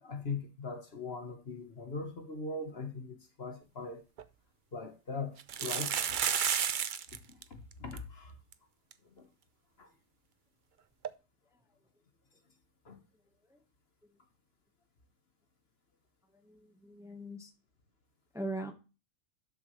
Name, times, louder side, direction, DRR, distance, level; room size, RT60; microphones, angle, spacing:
voice 1, 0.0-4.0 4.7-6.0 7.5-8.3 9.2-9.3 9.8-9.9 12.8-13.0, left 4 dB, 45° left, 1.5 m, -40 dB
sound 1, 3.8-3.9 4.2-4.3 5.4-7.2 7.4-7.5 7.7-8.0 8.5-8.6 8.9-9.0 11.0-11.1, right 8 dB, 55° right, 0.6 m, -31 dB
voice 2, 16.3-17.5 18.3-18.7, right 1 dB, ahead, 1.2 m, -41 dB
12.0 x 7.0 x 3.2 m
omnidirectional pair, 1.4 m